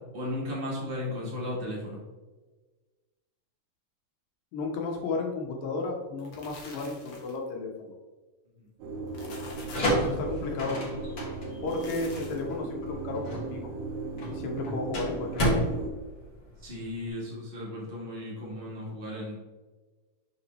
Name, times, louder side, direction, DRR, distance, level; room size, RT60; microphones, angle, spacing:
voice 1, 0.1-2.0 8.6-8.7 16.6-19.4, left 1 dB, 70° right, -5 dB, 0.5 m, -35 dB
voice 2, 4.5-8.0 9.8-10.8 11.6-13.7 14.3-15.6, left 3 dB, 80° left, 1 dB, 2.7 m, -33 dB
sound 1, 6.0-7.5 8.9-10.0 11.5-12.6, left 2 dB, 60° left, 1.6 m, -47 dB
sound 2, 8.8-15.9, right 3 dB, 90° right, 1.4 m, -37 dB
sound 3, 9.5-17.1, equal, 45° left, 1.8 m, -32 dB
6.4 x 5.8 x 3.1 m, 1.3 s
omnidirectional pair, 4.0 m